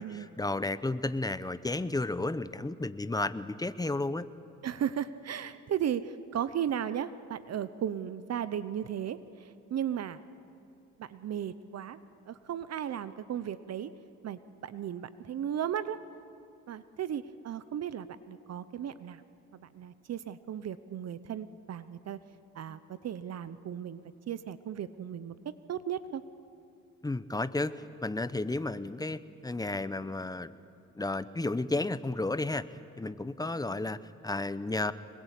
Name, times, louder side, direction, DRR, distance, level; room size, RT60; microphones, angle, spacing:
voice 1, 0.0-4.3 27.0-30.5 30.9-32.6 33.0-34.9, left 2 dB, 10° left, 14 dB, 0.8 m, -32 dB
voice 2, 4.6-10.2 11.0-12.0 12.3-13.9 14.2-16.0 16.7-19.2 19.5-22.2 22.5-25.3 25.7-26.2, right 9 dB, 55° right, 14 dB, 0.9 m, -35 dB
25.5 x 21.5 x 8.4 m, 2.7 s
cardioid pair, 90°, 30 cm